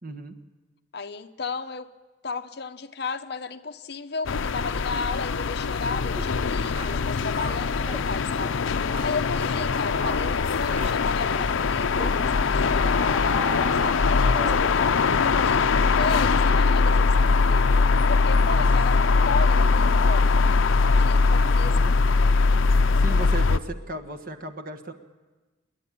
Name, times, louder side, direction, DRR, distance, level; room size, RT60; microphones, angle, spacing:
voice 1, 0.0-0.4 10.0-10.4 18.4-18.6 21.7-22.1 23.0-24.9, right 2 dB, 45° right, 7 dB, 1.4 m, -36 dB
voice 2, 0.9-1.9 2.2-8.6 9.0-14.7 15.2-15.7 15.9-17.7 18.1-19.0 19.2-20.5 21.0-21.9, left 4 dB, 55° left, 9 dB, 0.9 m, -34 dB
sound 1, 4.3-23.6, left 4 dB, 85° left, 0.5 m, -21 dB
sound 2, 6.1-6.4 6.7-7.0 7.3-8.1 8.4-8.6 8.9-9.1 9.4-9.7 10.0-10.2 10.7-11.0 11.3-11.5 11.9-12.2 12.8-14.8, right 1 dB, 30° right, 2.3 m, -37 dB
28.0 x 11.0 x 8.6 m, 1.2 s
head